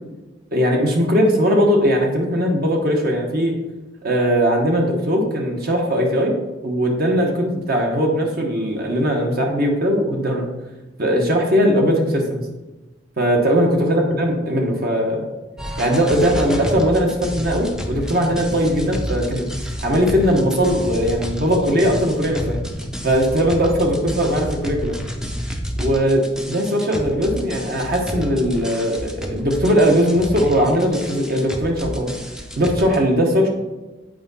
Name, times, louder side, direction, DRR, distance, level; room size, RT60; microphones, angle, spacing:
voice 1, 0.5-3.5 4.0-6.4 6.6-10.4 11.0-12.4 13.2-15.2 15.8-19.5 19.8-22.6 23.0-25.0 25.8-32.1 32.6-33.5, equal, 50° right, 1 dB, 1.0 m, -19 dB
sound 1, 15.6-33.0, equal, 5° right, 0.5 m, -30 dB
7.7 x 4.5 x 4.1 m, 1.1 s
head